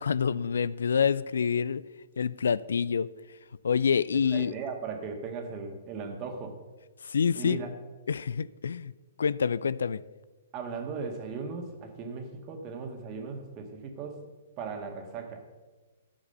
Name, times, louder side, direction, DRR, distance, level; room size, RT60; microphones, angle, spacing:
voice 1, 0.0-1.8 2.2-3.1 3.6-4.5 7.0-7.6 8.1-8.9 9.2-10.0, left 6 dB, 70° left, 18 dB, 0.3 m, -27 dB
voice 2, 4.3-6.6 7.3-7.7 10.5-14.2 14.6-15.4, right 5 dB, 30° right, 4 dB, 1.8 m, -37 dB
11.5 x 7.1 x 5.5 m, 1.2 s
figure-of-eight pair, 120°, 0 cm